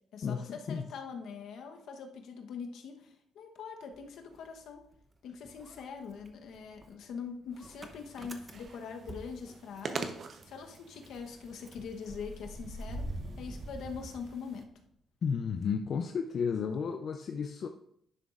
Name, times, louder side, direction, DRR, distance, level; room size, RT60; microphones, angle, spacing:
voice 1, 0.1-4.9 5.2-10.2 10.4-14.7, left 6 dB, 75° left, 4 dB, 1.0 m, -43 dB
Motor vehicle (road) / Engine starting, 3.9-5.1 5.4-10.1 10.4-10.5 10.7-14.9, right 1 dB, 25° right, 0.8 m, -45 dB
sound 1, 7.6-14.6, right 5 dB, 50° right, 0.8 m, -46 dB
voice 2, 15.2-17.7, left 6 dB, 55° left, 6 dB, 0.5 m, -32 dB
10.5 x 6.3 x 2.5 m, 0.70 s
cardioid pair, 90°, 0 cm